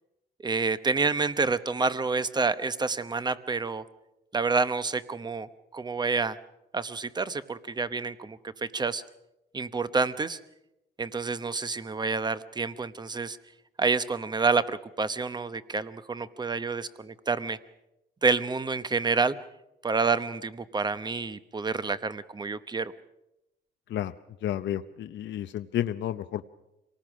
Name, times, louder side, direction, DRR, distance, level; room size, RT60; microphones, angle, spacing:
voice 1, 0.4-3.8 4.3-6.4 6.7-9.0 9.5-10.4 11.0-13.4 13.8-17.6 18.2-19.4 19.8-22.9, right 4 dB, 20° right, 13 dB, 0.9 m, -28 dB
voice 2, 24.4-26.5, left 11 dB, 65° left, 10 dB, 0.7 m, -31 dB
26.0 x 18.5 x 6.2 m, 0.90 s
cardioid pair, 115°, 20 cm